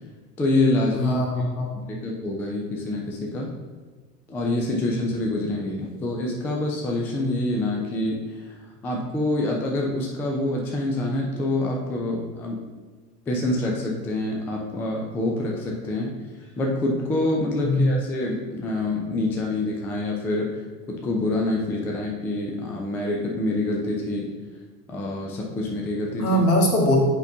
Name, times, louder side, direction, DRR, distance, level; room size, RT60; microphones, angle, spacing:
voice 1, 0.4-1.2 1.7-3.6 4.3-8.5 8.8-12.6 13.3-16.1 16.6-20.6 20.9-24.3 24.9-26.4, left 2 dB, 5° left, 0 dB, 0.3 m, -26 dB
voice 2, 1.0-1.7 17.6-17.9 26.2-27.0, left 1 dB, 70° left, 0 dB, 1.6 m, -21 dB
7.9 x 5.3 x 2.7 m, 1.4 s
figure-of-eight pair, 85°, 47 cm